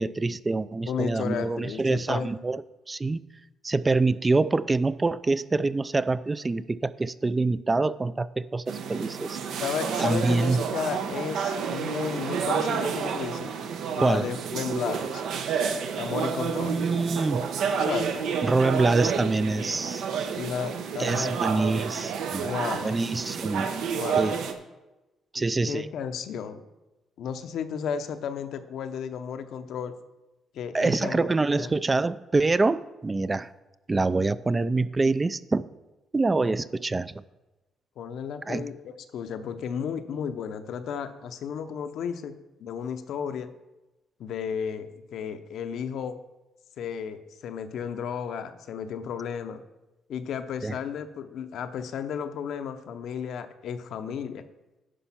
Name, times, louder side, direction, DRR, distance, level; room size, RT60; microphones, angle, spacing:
voice 1, 0.0-2.6 2.9-3.2 3.6-9.4 10.0-10.6 14.0-14.3 16.7-17.4 18.4-20.0 21.0-22.5 22.8-23.7 24.2-24.3 25.3-25.9 30.7-33.5 33.9-35.7 36.1-37.1 38.5-38.7 50.6-50.7, right 3 dB, 25° right, 16 dB, 0.3 m, -25 dB
voice 2, 0.9-2.3 9.6-13.5 14.0-15.2 16.0-16.8 17.8-18.1 20.3-21.8 22.4-23.0 24.0-24.4 25.7-26.6 27.2-29.9 30.5-31.3 31.5-31.7 38.0-43.5 44.2-46.2 46.8-49.6 50.1-54.4, left 7 dB, 75° left, 9 dB, 0.7 m, -33 dB
sound 1, 8.7-24.5, right 6 dB, 80° right, 0.9 m, -30 dB
10.0 x 5.3 x 5.8 m, 1.1 s
cardioid pair, 95°, 0 cm